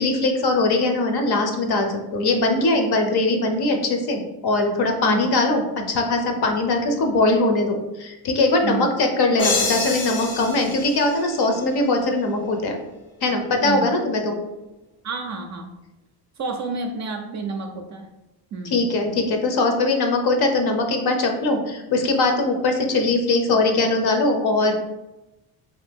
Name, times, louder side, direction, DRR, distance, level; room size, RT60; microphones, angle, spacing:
voice 1, 0.0-12.8 13.2-14.4 18.6-24.7, left 2 dB, 55° left, 4 dB, 0.7 m, -21 dB
sound 1, 9.4-12.1, left 3 dB, 85° left, 0.9 m, -27 dB
voice 2, 13.6-13.9 15.0-15.7 16.4-18.1 18.5-18.8, right 4 dB, 40° right, 4 dB, 0.4 m, -29 dB
2.7 x 2.5 x 3.4 m, 0.98 s
supercardioid pair, 80°, 47 cm